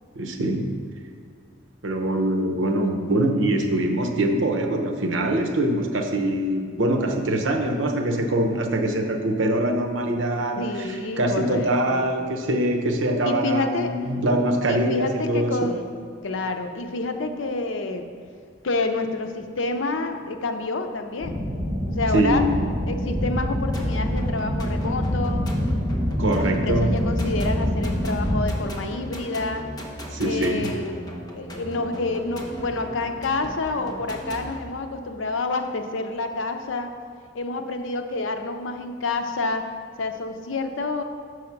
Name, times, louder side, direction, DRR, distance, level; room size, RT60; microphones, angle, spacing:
voice 1, 0.1-0.7 1.8-10.7 11.2-15.7 22.1-22.5 26.1-26.9 30.1-30.7, right 1 dB, 85° right, 5 dB, 0.8 m, -23 dB
voice 2, 10.6-12.1 13.2-13.9 14.7-15.9 16.2-18.0 18.6-21.4 22.0-22.4 22.9-25.5 26.3-29.7 30.2-31.0 31.3-36.9 37.3-39.7 40.0-41.0, left 3 dB, 90° left, 6 dB, 0.6 m, -28 dB
sound 1, 21.2-28.4, equal, 10° right, 1.7 m, -25 dB
sound 2, 23.7-34.6, right 1 dB, 20° left, 0.9 m, -38 dB
6.3 x 4.8 x 5.8 m, 2.2 s
head